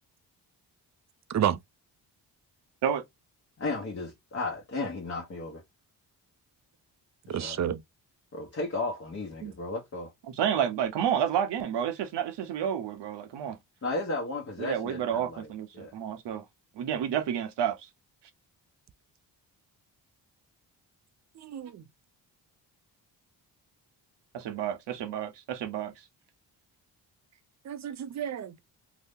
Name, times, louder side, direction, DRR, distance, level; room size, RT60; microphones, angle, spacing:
voice 1, 3.6-5.6 7.3-7.6 8.3-10.1 13.8-15.5 15.7-15.9, left 2 dB, 35° left, 0.9 m, -34 dB
voice 2, 7.3-7.8 9.4-9.5 21.4-21.8 27.7-28.5, right 9 dB, 40° right, 0.4 m, -30 dB
voice 3, 10.3-13.6 14.6-16.4 16.8-17.9 24.3-25.9, right 9 dB, 75° right, 0.8 m, -30 dB
2.8 x 2.1 x 3.4 m
cardioid pair, 65°, 43 cm